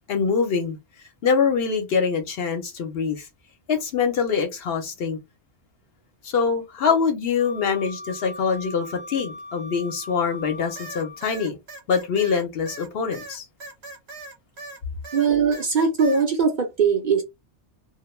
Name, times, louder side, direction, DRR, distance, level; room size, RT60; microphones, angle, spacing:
voice 1, 0.1-0.8 1.2-3.3 3.7-5.2 6.2-11.6 11.9-13.4, left 6 dB, 65° left, 0.8 m, -24 dB
Wind instrument woodwind instrument, 7.4-11.4, left 2 dB, 35° left, 0.5 m, -40 dB
sound 1, 10.8-14.8 15.0-16.3, right 2 dB, 70° right, 0.9 m, -40 dB
voice 2, 15.1-17.2, right 5 dB, 55° right, 0.6 m, -20 dB
2.3 x 2.2 x 3.1 m
omnidirectional pair, 1.2 m